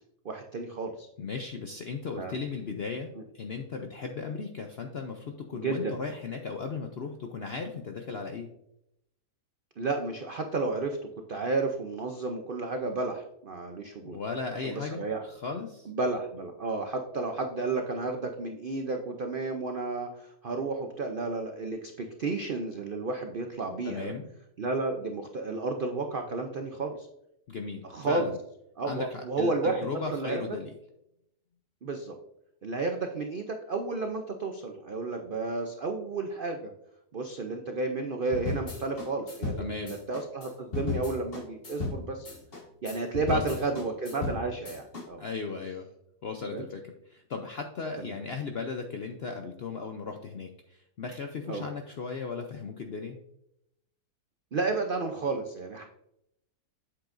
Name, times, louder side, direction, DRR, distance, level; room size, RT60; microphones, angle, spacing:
voice 1, 0.2-1.1 2.2-2.3 5.5-5.9 9.8-14.2 14.6-15.2 15.9-24.1 24.6-27.1 27.9-28.3 28.8-30.4 31.8-32.1 32.6-36.7 37.1-42.3 42.8-45.2 46.5-46.6 48.0-48.2 51.5-51.7 54.5-55.8, right 3 dB, 70° right, 4 dB, 0.5 m, -32 dB
voice 2, 1.2-8.5 14.0-15.9 23.8-24.3 27.5-28.4 28.8-30.7 39.6-39.9 43.3-43.6 45.2-45.9 46.2-53.2, left 4 dB, 65° left, 4 dB, 0.6 m, -36 dB
sound 1, 38.3-45.0, left 3 dB, 35° left, 1.6 m, -35 dB
8.6 x 7.7 x 2.5 m, 0.80 s
omnidirectional pair, 1.8 m